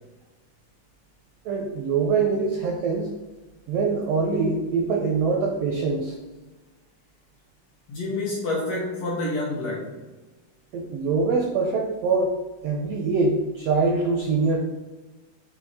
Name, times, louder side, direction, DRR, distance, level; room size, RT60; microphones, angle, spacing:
voice 1, 1.4-3.1 3.7-6.2 10.7-12.3 12.6-14.6, right 4 dB, 80° right, 1 dB, 1.4 m, -24 dB
voice 2, 7.9-10.0, left 2 dB, 70° left, -4 dB, 1.5 m, -28 dB
6.1 x 3.3 x 4.8 m, 1.2 s
omnidirectional pair, 3.7 m